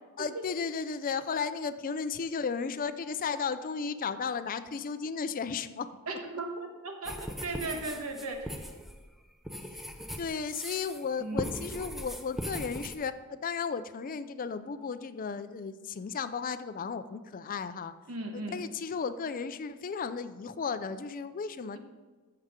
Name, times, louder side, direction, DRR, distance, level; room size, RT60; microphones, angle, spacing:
voice 1, 0.2-5.9 9.7-9.8 10.2-17.9 18.3-21.8, left 5 dB, 40° left, 12 dB, 0.4 m, -34 dB
voice 2, 6.1-8.7 11.2-11.4 18.1-18.6, right 2 dB, 75° right, 3 dB, 1.4 m, -37 dB
sound 1, 7.0-11.1 11.4-13.0, equal, ahead, 0.6 m, -39 dB
13.5 x 6.7 x 3.7 m, 1.3 s
head